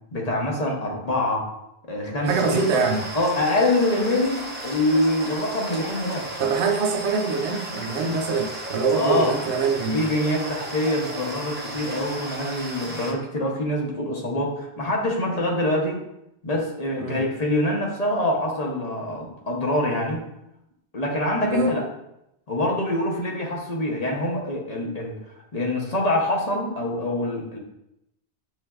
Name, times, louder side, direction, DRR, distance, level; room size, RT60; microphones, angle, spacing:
voice 1, 0.1-1.5 1.9-2.8 3.1-6.3 8.9-9.3 9.9-16.0 16.4-20.2 20.9-21.8 22.5-25.2 25.5-27.6, left 1 dB, 45° left, -1 dB, 0.7 m, -25 dB
voice 2, 2.2-3.1 6.4-10.1 17.0-17.2 21.5-21.7, right 4 dB, 90° right, 4 dB, 0.9 m, -24 dB
sound 1, 2.3-13.1, right 1 dB, 10° right, 0.6 m, -35 dB
6.3 x 3.2 x 2.3 m, 0.84 s
omnidirectional pair, 1.1 m